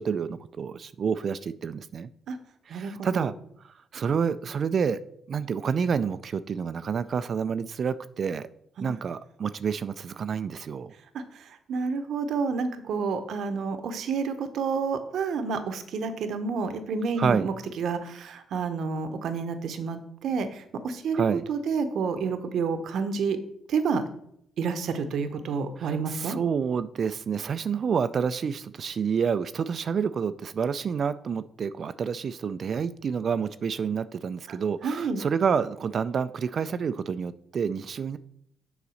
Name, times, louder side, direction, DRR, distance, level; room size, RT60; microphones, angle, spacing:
voice 1, 0.0-2.1 2.7-3.3 3.6-5.0 5.3-8.5 8.8-10.9 17.2-17.5 21.1-21.4 25.8-38.2, right 6 dB, 55° right, 13 dB, 0.3 m, -28 dB
voice 2, 2.7-3.3 8.8-8.9 11.1-11.2 11.7-23.4 23.7-24.0 24.6-26.4 34.5-34.6 34.8-35.2, right 5 dB, 70° right, 9 dB, 0.8 m, -29 dB
7.0 x 4.0 x 6.3 m, 0.71 s
supercardioid pair, 70°, 0 cm